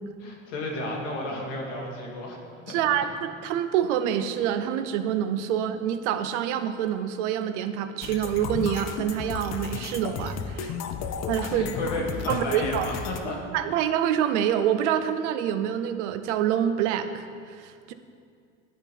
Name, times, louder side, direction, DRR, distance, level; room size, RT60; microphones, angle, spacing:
voice 1, 0.2-2.4 2.7-2.8 11.5-13.4, left 1 dB, 85° left, -1 dB, 1.6 m, -32 dB
voice 2, 2.7-10.8 11.3-11.7 12.3-12.9 13.5-17.3 17.6-17.9, right 10 dB, 80° right, 10 dB, 0.6 m, -26 dB
sound 1, 8.0-13.2, left 6 dB, 50° left, 0.6 m, -33 dB
10.0 x 3.9 x 4.5 m, 2.3 s
supercardioid pair, 90°, 35 cm